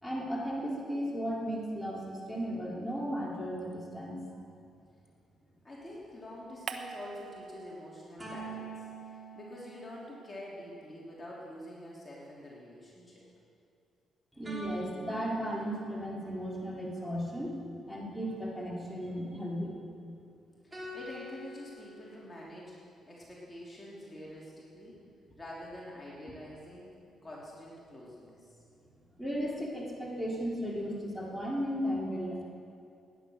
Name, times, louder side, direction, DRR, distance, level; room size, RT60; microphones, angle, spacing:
voice 1, 0.0-4.2 14.3-17.6 17.9-19.7 29.2-32.4, equal, ahead, -5 dB, 3.6 m, -35 dB
voice 2, 5.6-13.3 20.6-22.8 23.0-25.0 25.3-28.6, left 1 dB, 20° left, -5 dB, 3.0 m, -47 dB
sound 1, 6.7-8.3 8.6-11.1, right 6 dB, 60° right, 1.0 m, -47 dB
sound 2, 8.2-10.7 14.4-16.3 20.7-22.1, right 1 dB, 20° right, 3.5 m, -46 dB
18.0 x 10.0 x 6.4 m, 2.5 s
cardioid pair, 90°, 0 cm